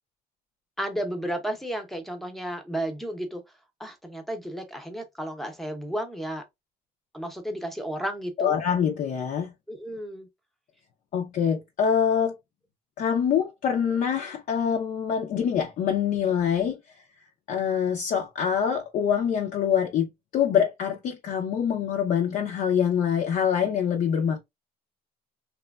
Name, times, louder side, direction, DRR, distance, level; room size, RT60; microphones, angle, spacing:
voice 1, 0.8-3.4 3.8-6.4 7.1-8.6 9.7-10.3, right 1 dB, ahead, 0.7 m, -33 dB
voice 2, 8.4-9.5 11.1-12.3 13.0-16.8 17.5-24.4, left 8 dB, 55° left, 0.5 m, -25 dB
2.9 x 2.1 x 2.3 m
cardioid pair, 110°, 17 cm